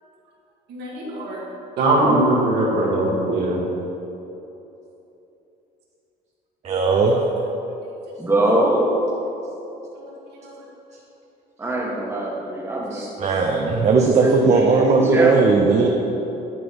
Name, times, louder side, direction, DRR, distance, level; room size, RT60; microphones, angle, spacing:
voice 1, 0.7-1.4 1.8-3.6 9.9-10.0 10.3-10.5, right 1 dB, 70° right, -4 dB, 2.0 m, -21 dB
voice 2, 6.6-7.2 12.9-15.9, right 4 dB, 40° right, 0 dB, 0.8 m, -18 dB
voice 3, 8.2-8.8 11.6-13.9 14.2-15.4, right 1 dB, 15° right, -3 dB, 1.6 m, -23 dB
11.0 x 4.1 x 5.3 m, 3.0 s
cardioid pair, 110°, 17 cm